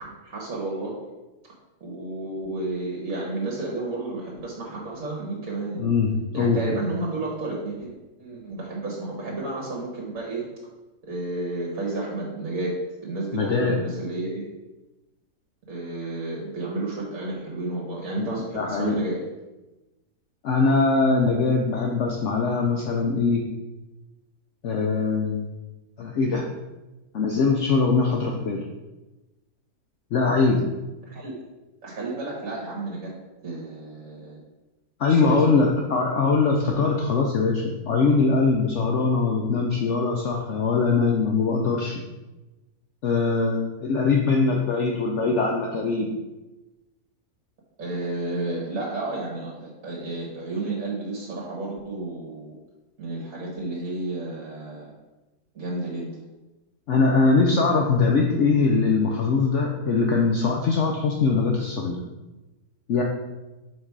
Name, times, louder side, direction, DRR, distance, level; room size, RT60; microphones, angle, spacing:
voice 1, 0.2-0.9 1.8-5.8 6.3-10.5 11.0-12.8 13.0-14.4 15.7-19.2 31.0-31.3 31.8-33.1 33.4-34.4 35.0-35.7 47.8-52.5 53.0-54.9 55.5-56.2, right 2 dB, 60° right, -3 dB, 1.7 m, -31 dB
voice 2, 5.8-6.6 13.3-13.7 18.2-18.3 18.5-19.0 20.4-23.4 24.6-25.5 26.0-26.4 27.1-28.6 30.1-30.6 35.0-41.9 43.0-46.1 56.9-62.0 62.9-63.0, left 4 dB, 60° left, 1 dB, 0.9 m, -22 dB
6.1 x 4.6 x 4.7 m, 1.1 s
omnidirectional pair, 1.6 m